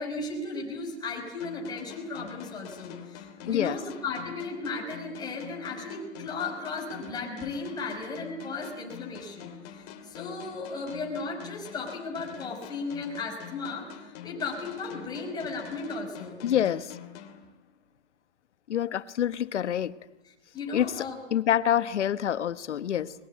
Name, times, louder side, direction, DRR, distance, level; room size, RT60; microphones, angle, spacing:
voice 1, 0.0-16.7 20.2-21.2, left 3 dB, 10° left, 0 dB, 5.2 m, -36 dB
sound 1, 1.4-18.0, left 9 dB, 35° left, 2.8 m, -46 dB
voice 2, 3.5-3.8 16.4-16.9 18.7-19.9 20.7-21.0 21.3-23.1, left 10 dB, 85° left, 15 dB, 1.2 m, -26 dB
22.0 x 21.5 x 9.5 m, 1.1 s
hypercardioid pair, 155°, 34 cm